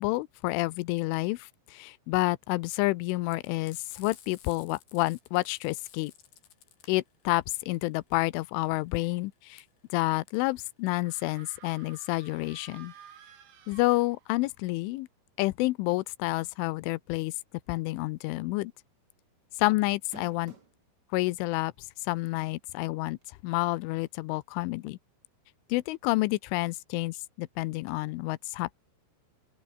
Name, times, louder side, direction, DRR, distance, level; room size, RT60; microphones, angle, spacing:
voice 1, 0.0-6.1 6.9-9.6 9.9-12.9 13.7-15.1 15.4-17.3 17.7-18.7 19.6-20.5 21.1-21.7 22.0-23.2 23.4-25.0 25.7-28.7, left 21 dB, 85° left, 3.2 m, -29 dB
Frying (food), 3.3-12.0, left 10 dB, 60° left, 4.2 m, -55 dB
sound 1, 11.0-14.6, right 8 dB, 70° right, 5.6 m, -53 dB
sound 2, 18.2-18.4 18.7-18.8 19.9-20.8 21.6-21.7 23.2-23.3, right 4 dB, 30° right, 2.5 m, -51 dB
open air
omnidirectional pair, 5.5 m